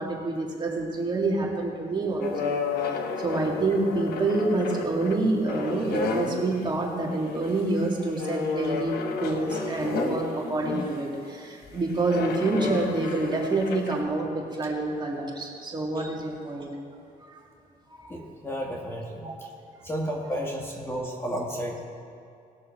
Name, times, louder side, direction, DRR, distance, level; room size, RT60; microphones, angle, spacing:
voice 1, 0.0-2.6 2.8-16.7 17.2-17.3 17.9-18.1 19.2-19.3, right 2 dB, 30° right, -2 dB, 2.3 m, -27 dB
sound 1, 2.2-6.6 7.0-7.5 8.1-11.0 12.0-14.0, left 4 dB, 90° left, 1.2 m, -31 dB
voice 2, 18.1-19.5 19.8-21.8, equal, 15° left, -1 dB, 1.7 m, -33 dB
19.0 x 6.4 x 4.5 m, 2.5 s
cardioid pair, 110°, 16 cm